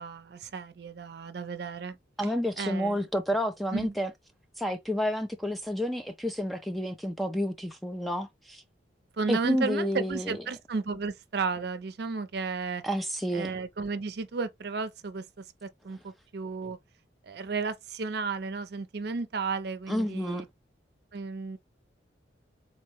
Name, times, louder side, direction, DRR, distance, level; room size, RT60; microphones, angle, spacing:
voice 1, 0.0-2.3 2.6-3.1 3.7-3.9 9.2-12.8 13.3-16.8 17.2-20.5 21.1-21.6, right 4 dB, 60° right, 0.5 m, -33 dB
voice 2, 2.2-4.1 4.6-8.6 9.3-10.4 12.8-13.5 19.9-20.5, equal, ahead, 0.3 m, -30 dB
4.1 x 2.0 x 3.0 m
head